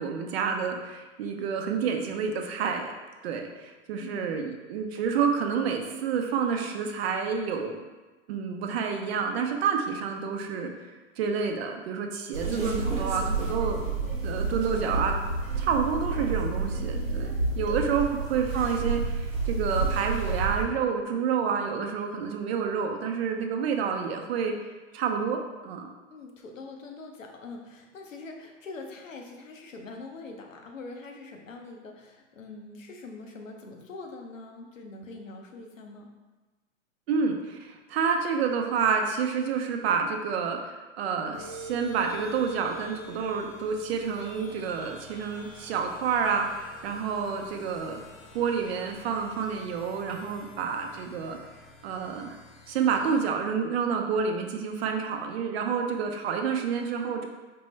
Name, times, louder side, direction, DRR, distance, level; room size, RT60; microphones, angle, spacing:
voice 1, 0.0-2.9 3.2-7.8 8.3-10.9 11.2-13.9 14.2-15.1 15.6-24.5 24.9-25.9 37.1-48.0 48.3-51.4 51.8-52.4 52.7-57.3, right 6 dB, 55° right, 3 dB, 0.6 m, -29 dB
voice 2, 4.0-4.4 17.7-18.0 26.1-36.1, left 3 dB, 85° left, 2 dB, 0.7 m, -43 dB
sound 1, 12.3-20.7, right 4 dB, 85° right, 0.8 m, -29 dB
sound 2, 41.3-53.2, right 1 dB, 35° left, 0.8 m, -47 dB
4.4 x 2.1 x 3.0 m, 1.2 s
figure-of-eight pair, 105°, 38 cm